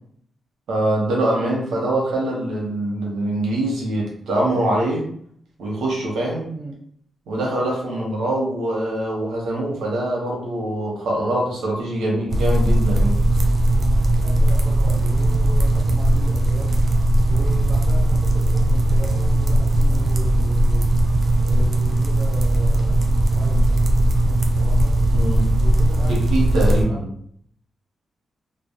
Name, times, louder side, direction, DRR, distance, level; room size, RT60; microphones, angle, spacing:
voice 1, 0.7-5.1 5.6-6.5 7.3-13.2 25.1-25.6 26.1-27.1, right 1 dB, 85° right, -2 dB, 0.9 m, -23 dB
sound 1, 12.3-26.8, right 1 dB, 55° right, 0.4 m, -18 dB
voice 2, 14.2-16.8 17.3-20.9 21.4-23.1 23.3-25.0 25.6-26.2 26.7-27.1, right 1 dB, 35° right, -3 dB, 1.1 m, -38 dB
2.3 x 2.1 x 2.8 m, 0.63 s
cardioid pair, 65°, 0 cm